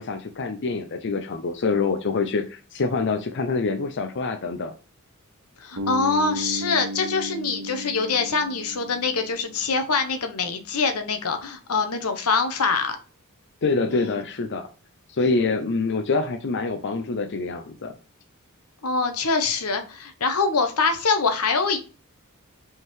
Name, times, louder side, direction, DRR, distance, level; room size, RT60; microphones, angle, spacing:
voice 1, 0.0-4.7 13.6-14.7 15.1-17.9, left 4 dB, 55° left, 6 dB, 0.6 m, -26 dB
voice 2, 5.6-13.0 13.9-14.2 18.8-21.8, left 4 dB, 85° left, 7 dB, 0.9 m, -24 dB
Bass guitar, 5.8-9.9, right 1 dB, 60° right, 1.1 m, -34 dB
5.4 x 3.8 x 4.6 m, 0.36 s
head